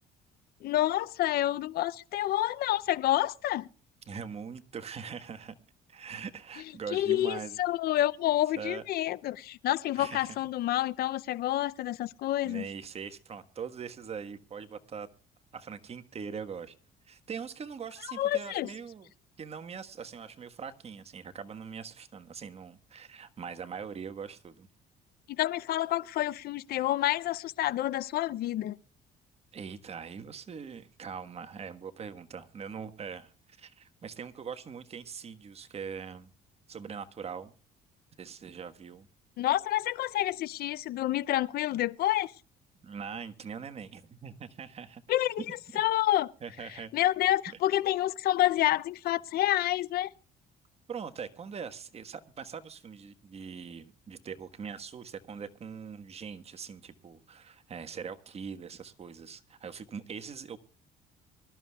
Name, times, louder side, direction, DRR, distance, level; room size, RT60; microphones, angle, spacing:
voice 1, 0.6-3.7 6.9-12.7 18.1-18.7 25.3-28.8 39.4-42.3 45.1-46.3 46.9-50.1, left 14 dB, 65° left, 0.6 m, -28 dB
voice 2, 4.1-5.5 5.9-7.6 8.6-8.8 10.0-10.3 12.4-15.1 15.5-16.7 17.1-19.1 19.4-24.7 29.5-36.3 36.7-37.5 38.2-39.1 42.8-45.0 45.4-45.5 46.4-46.9 50.9-60.6, right 6 dB, 35° right, 1.4 m, -42 dB
24.5 x 13.0 x 2.3 m
cardioid pair, 110°, 17 cm